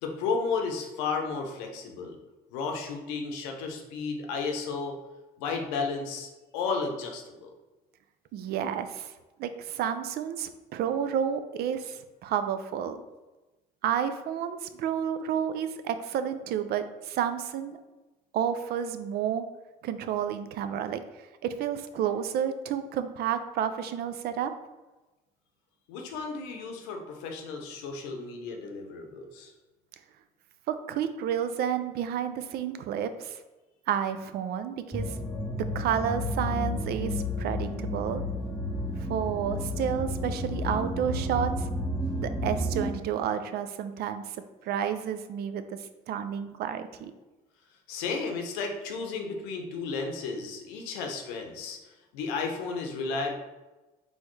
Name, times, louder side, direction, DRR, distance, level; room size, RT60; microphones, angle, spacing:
voice 1, 0.0-2.2 2.5-5.0 5.4-7.5 25.9-29.5 38.5-38.6 47.9-53.4, left 4 dB, 90° left, 3 dB, 0.7 m, -33 dB
voice 2, 8.3-9.1 9.4-13.0 13.8-17.8 18.3-19.4 19.8-21.0 21.4-24.5 30.7-33.4 33.9-35.1 35.7-38.2 39.1-41.7 42.2-44.4 44.6-47.1, right 9 dB, 65° right, 10 dB, 0.4 m, -30 dB
sound 1, 34.9-42.9, left 1 dB, 5° left, 0.7 m, -31 dB
4.3 x 3.4 x 3.1 m, 1.1 s
supercardioid pair, 80°, 18 cm